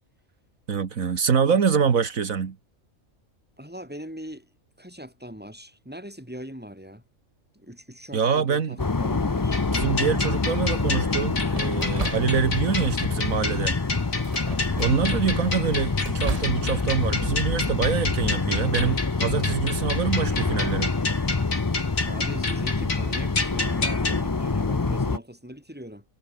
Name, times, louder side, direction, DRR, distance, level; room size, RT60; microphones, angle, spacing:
voice 1, 0.7-2.6 8.1-8.8 9.7-13.7 14.8-21.0, right 6 dB, 80° right, 2.0 m, -25 dB
voice 2, 3.6-4.5 4.8-7.0 7.5-9.6 22.1-26.0, equal, 5° right, 6.4 m, -41 dB
sound 1, 8.8-25.2, left 3 dB, 25° left, 0.5 m, -26 dB
sound 2, 9.5-24.2, left 3 dB, 75° left, 4.7 m, -31 dB
sound 3, 10.2-10.6 11.5-12.8 13.1-13.5 14.1-15.2 15.5-16.6, right 2 dB, 25° right, 2.3 m, -35 dB
omnidirectional pair, 1.4 m